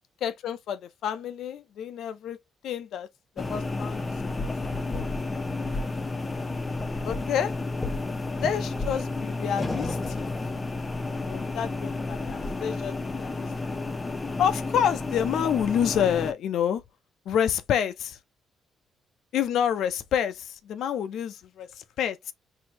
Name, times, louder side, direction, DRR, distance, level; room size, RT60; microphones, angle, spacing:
voice 1, 0.2-2.4 2.6-3.1 3.4-4.1 4.4-4.5 4.9-5.1 7.0-7.5 8.4-10.3 11.2-13.3 14.4-16.8 17.3-18.2 19.3-22.3, left 9 dB, 75° left, 0.4 m, -28 dB
sound 1, 3.4-16.3, left 3 dB, 25° left, 0.6 m, -31 dB
4.3 x 2.7 x 2.8 m
cardioid pair, 90°, 0 cm